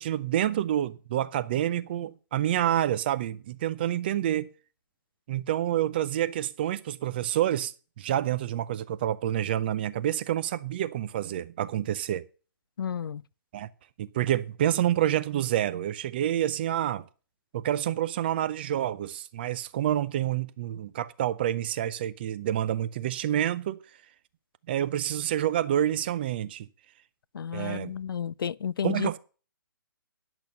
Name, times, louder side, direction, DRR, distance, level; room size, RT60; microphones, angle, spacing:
voice 1, 0.0-4.5 5.3-12.2 13.5-13.7 14.0-17.0 17.5-23.8 24.7-26.7 27.5-27.9 28.8-29.2, right 11 dB, 30° right, 0.5 m, -28 dB
voice 2, 12.8-13.2 27.3-29.1, left 8 dB, 75° left, 0.4 m, -31 dB
10.5 x 6.2 x 6.8 m
hypercardioid pair, 160°, 12 cm